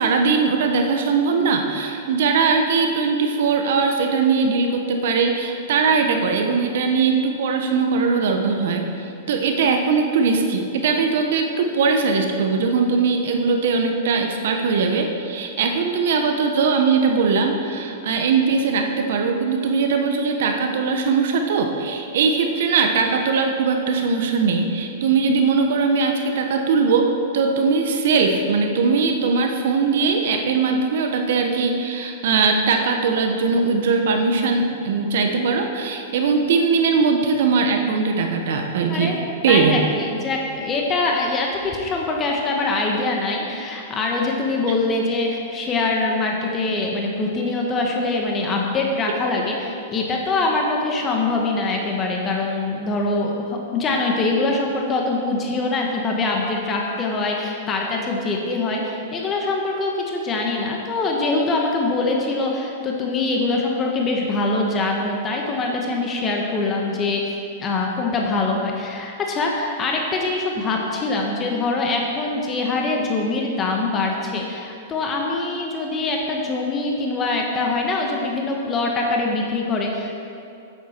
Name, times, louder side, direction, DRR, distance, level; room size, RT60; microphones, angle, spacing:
voice 1, 0.0-39.2 39.4-39.9, right 4 dB, 65° right, 4 dB, 1.0 m, -20 dB
voice 2, 39.5-80.2, left 3 dB, 25° left, 0 dB, 1.3 m, -23 dB
9.5 x 8.8 x 4.5 m, 2.6 s
hypercardioid pair, 125°, 0 cm